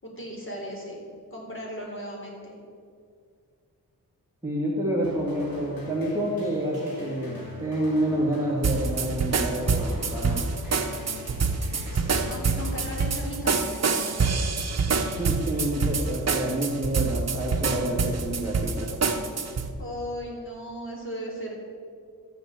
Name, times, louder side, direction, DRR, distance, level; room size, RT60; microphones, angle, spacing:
voice 1, 0.0-1.0 1.3-2.5 11.9-14.2 19.8-21.5, equal, 35° left, -2 dB, 4.1 m, -36 dB
voice 2, 4.4-10.4 15.2-18.9, right 1 dB, 10° right, -5 dB, 2.3 m, -28 dB
sound 1, 5.0-13.6, left 1 dB, 70° left, 3.8 m, -43 dB
sound 2, 8.6-19.7, right 4 dB, 45° right, 1.1 m, -26 dB
13.0 x 7.9 x 8.0 m, 2.2 s
wide cardioid pair, 110°, 36 cm